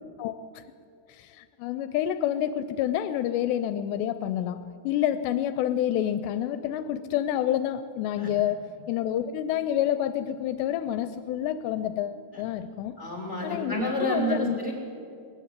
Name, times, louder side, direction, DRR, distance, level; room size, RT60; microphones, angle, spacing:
voice 1, 0.2-0.6 1.1-13.0 13.4-14.6, left 11 dB, 85° left, 11 dB, 2.8 m, -28 dB
voice 2, 13.0-14.7, equal, 20° left, -1 dB, 2.8 m, -29 dB
21.5 x 14.0 x 9.3 m, 2.4 s
omnidirectional pair, 4.9 m